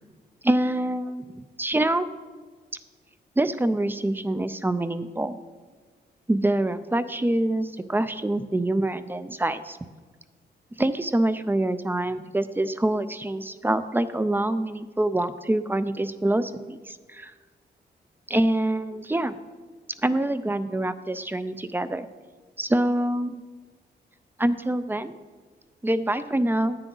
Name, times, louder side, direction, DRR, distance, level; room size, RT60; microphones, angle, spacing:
voice 1, 0.4-2.1 3.4-5.4 6.3-9.8 10.8-17.3 18.3-19.4 20.0-22.1 22.6-23.4 24.4-25.1 25.8-26.8, right 1 dB, 10° right, 12 dB, 0.4 m, -25 dB
9.8 x 9.0 x 3.9 m, 1.4 s
cardioid pair, 100°, 18 cm